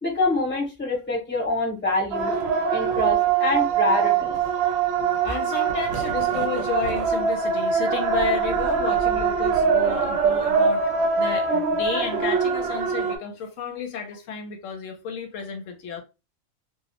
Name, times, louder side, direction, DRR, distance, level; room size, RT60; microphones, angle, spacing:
voice 1, 0.0-2.3 2.7-4.4 10.7-10.8, left 2 dB, 10° left, 0.8 m, -25 dB
sound 1, 2.1-13.2, right 6 dB, 65° right, 0.8 m, -23 dB
voice 2, 5.2-10.8 11.2-16.0, left 6 dB, 80° left, 0.9 m, -31 dB
2.3 x 2.0 x 2.8 m
omnidirectional pair, 1.3 m